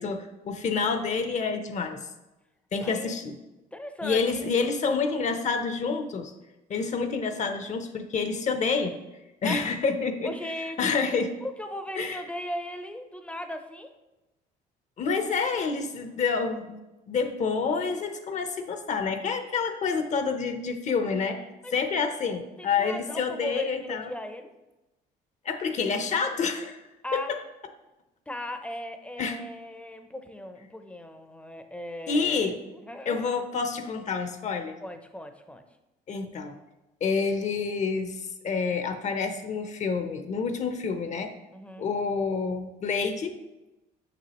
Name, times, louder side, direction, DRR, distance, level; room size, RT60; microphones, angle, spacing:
voice 1, 0.0-2.0 2.7-3.3 4.0-6.3 6.7-9.0 9.4-10.3 10.8-11.3 12.0-12.2 15.0-16.8 17.1-21.4 21.7-24.1 25.4-26.8 27.1-27.4 29.2-29.4 32.1-32.6 33.1-34.7 36.1-36.6 37.0-41.3 41.8-43.3, left 5 dB, 45° left, 7 dB, 0.7 m, -28 dB
voice 2, 2.8-3.2 3.7-4.5 9.4-9.7 10.2-11.0 11.4-13.9 21.6-21.7 22.6-24.5 27.0-27.3 28.3-33.3 34.8-35.6 41.5-41.9, left 1 dB, 5° left, 7 dB, 0.6 m, -37 dB
6.5 x 6.0 x 3.0 m, 1.0 s
cardioid pair, 110°, 17 cm